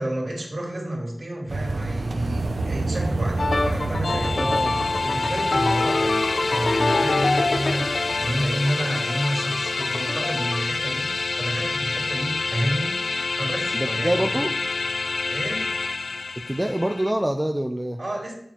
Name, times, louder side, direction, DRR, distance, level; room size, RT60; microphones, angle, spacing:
voice 1, 0.0-4.7 5.0-14.1 15.3-15.6 18.0-18.3, equal, 55° right, -1 dB, 2.8 m, -30 dB
sound 1, 1.5-8.4, right 2 dB, 80° right, 0.8 m, -30 dB
sound 2, 3.4-10.6, left 2 dB, 65° left, 0.8 m, -26 dB
sound 3, 4.0-17.1, left 3 dB, 85° left, 0.4 m, -27 dB
voice 2, 4.4-4.8 13.7-14.5 16.5-18.0, right 1 dB, 15° right, 4 dB, 0.6 m, -25 dB
7.2 x 7.1 x 4.5 m, 0.73 s
cardioid pair, 45°, 0 cm